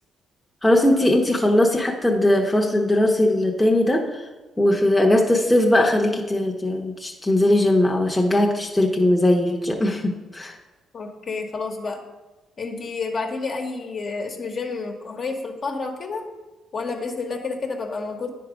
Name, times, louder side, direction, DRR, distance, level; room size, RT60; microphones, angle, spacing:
voice 1, 0.6-4.0 4.6-10.5, left 1 dB, 10° left, 0 dB, 0.9 m, -19 dB
voice 2, 10.9-12.0 12.6-16.2 16.7-18.3, left 4 dB, 50° left, 2 dB, 1.3 m, -30 dB
9.5 x 4.7 x 5.1 m, 1.1 s
cardioid pair, 90°, 0 cm